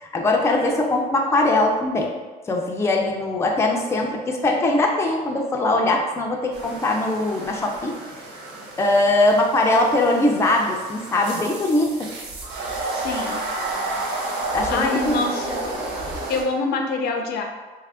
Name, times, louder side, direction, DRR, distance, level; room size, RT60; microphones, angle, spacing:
voice 1, 0.0-2.1 2.5-8.0 8.8-12.1 14.5-15.3, left 2 dB, 15° left, 0 dB, 0.4 m, -21 dB
sound 1, 6.5-16.4, right 2 dB, 85° right, 0.7 m, -31 dB
voice 2, 12.9-13.4 14.5-15.7 16.3-17.4, left 4 dB, 70° left, 3 dB, 0.5 m, -26 dB
2.8 x 2.4 x 3.5 m, 1.3 s
cardioid pair, 110°, 17 cm